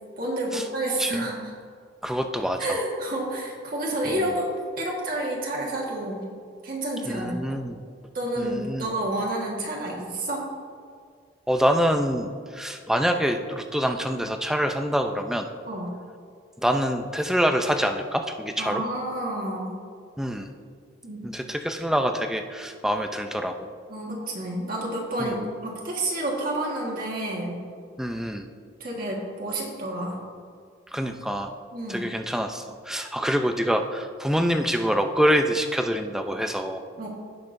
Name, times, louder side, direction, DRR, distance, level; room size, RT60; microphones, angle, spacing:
voice 1, 0.2-1.4 2.6-4.5 4.8-6.3 6.6-7.6 8.1-10.5 15.7-16.0 18.6-19.8 21.0-21.2 23.9-27.6 28.8-30.2 31.7-32.0 37.0-37.1, right 1 dB, 45° right, -3 dB, 1.5 m, -29 dB
voice 2, 2.0-2.8 4.1-4.2 7.1-7.8 8.4-8.9 11.5-15.5 16.6-18.8 20.2-20.5 21.2-23.7 25.2-25.5 28.0-28.5 30.9-31.5 31.9-36.8, equal, ahead, 5 dB, 0.4 m, -26 dB
17.5 x 5.9 x 2.6 m, 2.1 s
head